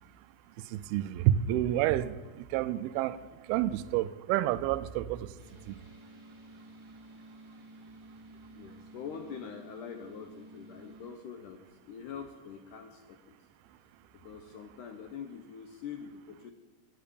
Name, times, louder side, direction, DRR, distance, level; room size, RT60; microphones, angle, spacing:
voice 1, 0.7-3.2 3.5-5.3 5.7-5.8, right 13 dB, 90° right, 2.5 m, -29 dB
sound 1, 5.4-11.1, right 1 dB, 15° left, 1.7 m, -52 dB
voice 2, 8.5-13.4 14.1-16.5, left 7 dB, 75° left, 2.0 m, -44 dB
10.5 x 8.7 x 8.6 m
omnidirectional pair, 4.3 m